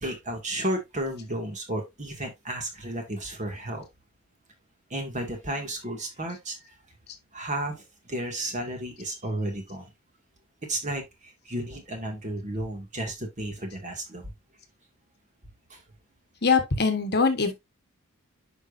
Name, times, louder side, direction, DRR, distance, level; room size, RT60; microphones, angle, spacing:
voice 1, 0.0-3.8 4.9-6.6 7.3-9.9 10.7-11.0 11.5-14.3 15.7-15.8, right 1 dB, 35° right, 2.2 m, -33 dB
voice 2, 16.4-17.5, left 4 dB, 45° left, 1.3 m, -22 dB
9.5 x 5.4 x 2.6 m
head